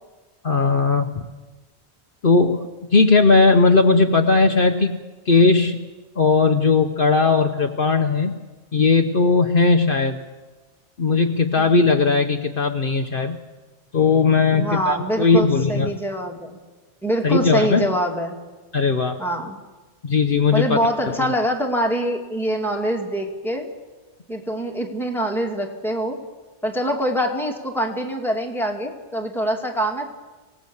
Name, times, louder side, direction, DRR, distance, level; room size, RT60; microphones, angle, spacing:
voice 1, 0.4-1.2 2.2-5.9 6.2-8.3 8.7-10.2 11.0-13.4 13.9-16.0 17.2-17.9 18.7-19.2 20.0-21.3, left 4 dB, 55° left, 6 dB, 1.1 m, -18 dB
voice 2, 14.5-16.5 17.0-18.4 19.2-19.6 20.5-23.7 24.3-26.2 26.6-30.1, equal, ahead, 0 dB, 2.5 m, -24 dB
25.5 x 17.5 x 7.1 m, 1.2 s
omnidirectional pair, 1.1 m